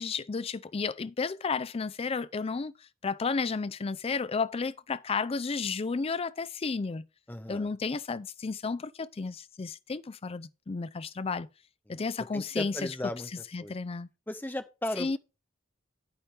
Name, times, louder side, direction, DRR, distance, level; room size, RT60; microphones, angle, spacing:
voice 1, 0.0-2.7 3.0-7.0 7.5-11.5 11.9-12.9 13.5-14.1 15.0-15.2, left 4 dB, 30° left, 0.4 m, -32 dB
voice 2, 7.3-7.7 11.9-12.0 12.3-13.3 13.6-13.7 14.3-15.2, left 1 dB, 10° left, 0.8 m, -36 dB
9.5 x 8.7 x 3.4 m
head